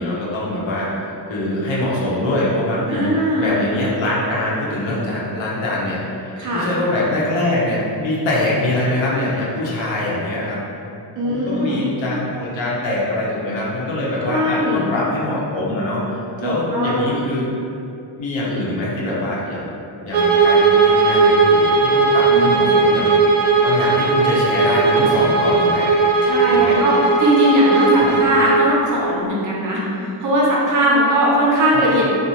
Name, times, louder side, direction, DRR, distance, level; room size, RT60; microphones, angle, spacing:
voice 1, 0.0-3.1 3.4-10.6 11.2-16.1 16.4-17.5 18.2-19.7 20.0-23.1 23.6-25.9 26.5-26.8 28.0-28.2 31.7-31.9, left 1 dB, 80° left, -6 dB, 0.8 m, -23 dB
voice 2, 2.9-3.5 6.4-6.7 11.2-11.8 14.3-14.8 16.4-17.2 22.3-22.6 26.2-29.8 30.2-32.0, equal, 45° right, -5 dB, 0.6 m, -19 dB
Bowed string instrument, 20.1-28.6, right 4 dB, 85° right, 0.5 m, -16 dB
2.5 x 2.0 x 2.9 m, 2.6 s
cardioid pair, 135°, 45 cm